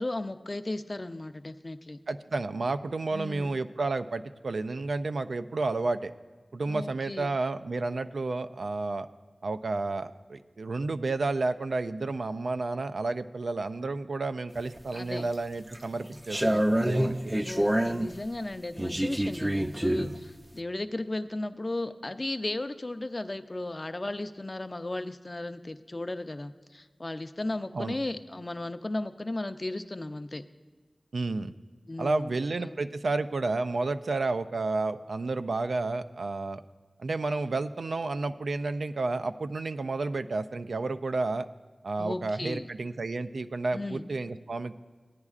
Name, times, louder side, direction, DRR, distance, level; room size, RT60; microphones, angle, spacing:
voice 1, 0.0-2.0 3.1-3.5 6.7-7.3 14.9-15.3 17.4-30.4 31.9-32.3 32.6-32.8 42.0-42.7 43.7-44.0, left 2 dB, 40° left, 10 dB, 0.5 m, -35 dB
voice 2, 2.1-6.1 6.5-9.1 9.4-17.2 27.7-28.0 31.1-31.5 32.0-36.6 37.0-41.5 41.8-44.8, right 3 dB, 80° right, 10 dB, 0.3 m, -31 dB
sound 1, 14.6-15.2 15.7-18.1 18.8-20.2, right 1 dB, 20° right, 0.4 m, -27 dB
16.5 x 9.7 x 2.4 m, 1.3 s
cardioid pair, 40°, 0 cm